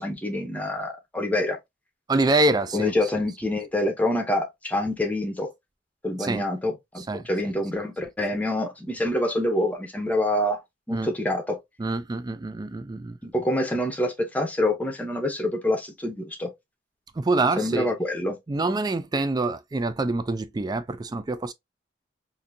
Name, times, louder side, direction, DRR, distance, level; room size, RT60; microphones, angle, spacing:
voice 1, 0.0-1.6 2.7-5.5 6.0-10.6 10.9-11.6 13.2-16.5 17.6-18.4, left 1 dB, 10° left, 0.7 m, -26 dB
voice 2, 2.1-3.2 6.2-6.5 7.0-7.5 10.9-11.1 11.8-13.2 17.2-17.9 18.5-21.5, right 2 dB, 20° right, 0.3 m, -26 dB
3.8 x 2.6 x 2.6 m
head